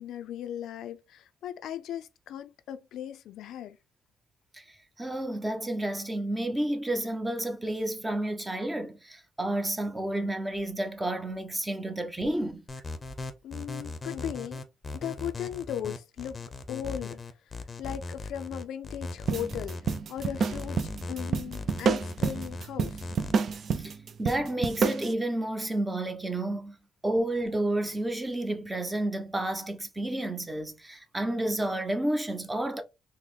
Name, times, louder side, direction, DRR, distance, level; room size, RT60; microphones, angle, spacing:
voice 1, 0.0-3.8 13.4-14.6 14.9-17.5 17.8-23.1, left 10 dB, 80° left, 0.3 m, -38 dB
voice 2, 4.5-12.6 23.7-26.8 27.0-32.8, right 1 dB, 15° right, 0.6 m, -31 dB
sound 1, 12.7-23.3, left 3 dB, 30° left, 0.6 m, -38 dB
sound 2, 19.3-25.1, right 5 dB, 55° right, 0.4 m, -29 dB
3.8 x 2.0 x 3.2 m
cardioid pair, 90°, 0 cm